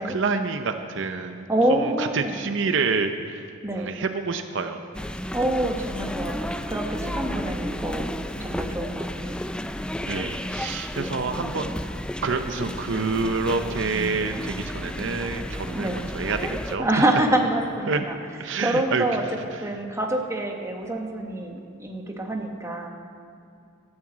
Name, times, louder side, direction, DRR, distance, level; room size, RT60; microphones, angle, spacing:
voice 1, 0.0-3.4 3.7-4.8 10.1-11.7 12.2-16.9 17.9-18.0 18.4-19.6, right 4 dB, 60° right, 7 dB, 0.6 m, -28 dB
voice 2, 1.5-2.4 3.6-3.9 5.3-9.4 15.7-16.0 16.8-18.2 18.6-19.2 19.6-22.9, right 1 dB, 15° right, 2 dB, 1.1 m, -26 dB
sound 1, 4.9-16.8, left 1 dB, 5° left, 0.3 m, -32 dB
13.0 x 8.8 x 7.4 m, 2.6 s
head